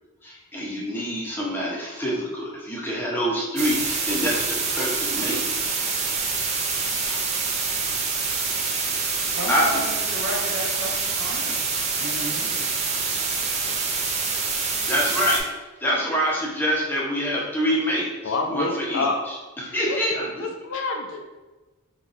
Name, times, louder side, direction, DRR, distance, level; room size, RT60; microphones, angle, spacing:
voice 1, 0.2-5.4 7.1-7.2 9.1-9.8 14.9-15.4 15.8-20.5, equal, 10° left, -4 dB, 0.6 m, -26 dB
sound 1, 3.6-15.4, right 4 dB, 30° right, 0.4 m, -26 dB
voice 2, 9.3-11.6 12.0-12.7, right 1 dB, 65° right, -1 dB, 0.7 m, -33 dB
voice 3, 18.2-19.2 19.9-20.0 20.4-21.3, left 3 dB, 65° left, 3 dB, 0.4 m, -27 dB
4.0 x 2.3 x 2.4 m, 1.2 s
head